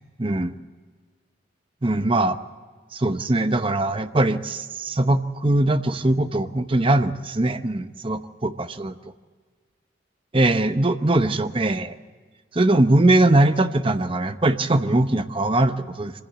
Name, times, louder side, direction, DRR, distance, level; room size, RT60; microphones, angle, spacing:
voice 1, 0.2-0.5 1.8-2.4 2.9-8.9 10.3-11.9 12.5-16.1, right 2 dB, 30° right, 10 dB, 0.8 m, -21 dB
24.0 x 15.5 x 8.1 m, 1.5 s
head